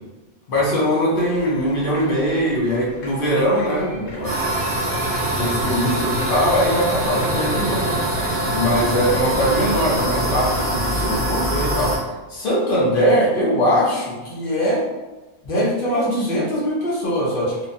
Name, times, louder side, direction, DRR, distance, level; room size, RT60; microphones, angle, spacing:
voice 1, 0.5-4.3 5.4-7.9 8.2-8.3 8.5-11.9 12.3-14.8 15.4-17.7, equal, 60° left, -6 dB, 0.9 m, -21 dB
sound 1, 1.2-11.2, left 1 dB, 90° left, 1.2 m, -36 dB
sound 2, 4.2-12.0, right 1 dB, 20° right, 0.4 m, -23 dB
2.9 x 2.2 x 2.5 m, 1.1 s
omnidirectional pair, 1.1 m